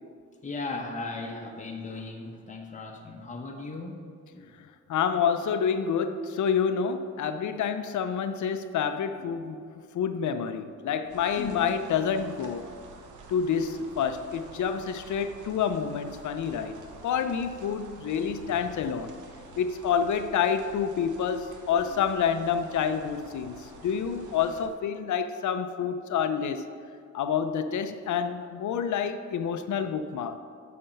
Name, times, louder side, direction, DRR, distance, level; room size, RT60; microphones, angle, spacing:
voice 1, 0.4-4.5 11.4-11.6, left 3 dB, 25° left, 1 dB, 0.9 m, -37 dB
voice 2, 4.9-9.6 9.9-12.7 13.3-19.1 19.6-26.7 27.1-30.4, left 7 dB, 80° left, 10 dB, 0.5 m, -28 dB
sound 1, 11.1-24.7, right 3 dB, 90° right, 0.9 m, -49 dB
9.0 x 4.3 x 5.7 m, 2.2 s
cardioid pair, 105°, 29 cm